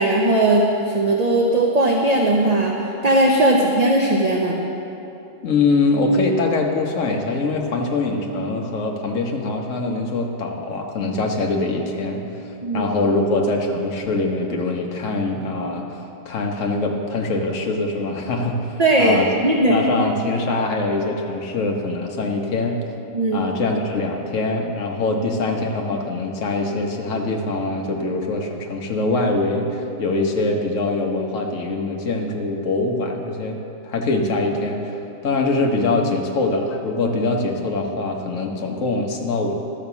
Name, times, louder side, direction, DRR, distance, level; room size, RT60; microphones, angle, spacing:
voice 1, 0.0-2.8 3.0-4.6 12.6-12.9 18.8-19.8 23.1-23.4, right 1 dB, 35° right, -1 dB, 0.8 m, -18 dB
voice 2, 5.4-12.2 12.7-15.9 16.2-19.3 19.7-22.8 23.3-33.6 33.8-39.5, left 2 dB, 70° left, 1 dB, 1.4 m, -23 dB
12.5 x 5.8 x 7.0 m, 2.9 s
omnidirectional pair, 1.4 m